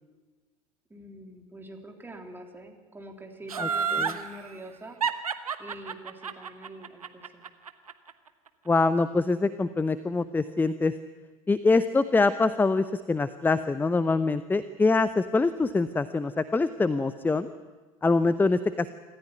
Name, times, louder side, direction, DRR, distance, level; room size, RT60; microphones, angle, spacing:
voice 1, 0.9-5.0 5.6-7.5, right 1 dB, 10° right, 2 dB, 3.7 m, -45 dB
Laughter, 3.5-4.2 5.0-8.1 8.5-8.6, right 6 dB, 80° right, 1.1 m, -29 dB
voice 2, 3.6-4.1 8.7-10.9 11.5-17.5 18.0-18.9, left 3 dB, 10° left, 14 dB, 0.7 m, -24 dB
26.0 x 14.5 x 9.4 m, 1.3 s
figure-of-eight pair, 75°, 18 cm